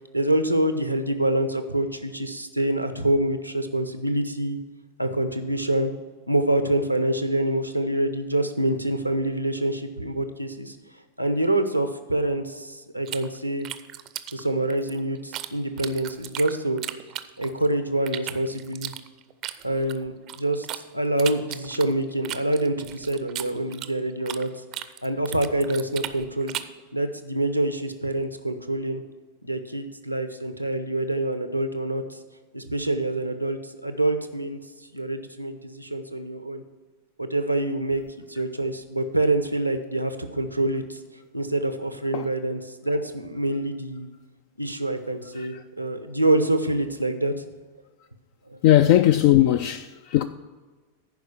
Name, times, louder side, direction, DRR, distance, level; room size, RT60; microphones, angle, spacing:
voice 1, 0.0-4.6 5.0-5.9 6.3-10.8 11.2-13.7 14.3-16.8 17.4-18.9 19.6-20.7 20.9-24.5 25.0-26.6 26.9-29.0 29.4-32.2 32.5-36.6 37.2-41.0 41.3-44.1 44.6-47.3 48.5-48.6, right 1 dB, 90° right, 0.7 m, -26 dB
sound 1, 13.1-15.5 15.8-17.7 18.1-20.8 21.2-24.5 24.7-26.8, right 13 dB, 35° right, 0.5 m, -36 dB
voice 2, 48.6-50.2, left 13 dB, 50° left, 0.3 m, -18 dB
10.5 x 4.9 x 7.0 m
figure-of-eight pair, 90°, 0 cm